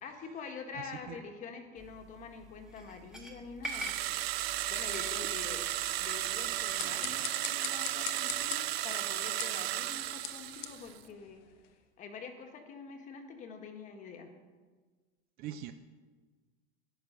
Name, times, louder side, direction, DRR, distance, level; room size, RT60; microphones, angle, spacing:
voice 1, 0.0-4.0 4.7-5.6 6.0-11.4 12.0-14.3, left 5 dB, 25° left, 5 dB, 1.7 m, -46 dB
voice 2, 0.7-1.2 15.4-15.7, right 10 dB, 30° right, 10 dB, 0.6 m, -42 dB
sound 1, 1.8-7.0, right 1 dB, ahead, 1.6 m, -46 dB
sound 2, 3.6-11.0, right 14 dB, 85° right, 0.9 m, -34 dB
sound 3, 6.5-11.8, left 12 dB, 80° left, 1.3 m, -44 dB
13.5 x 11.0 x 6.7 m, 1.4 s
supercardioid pair, 160°, 30 cm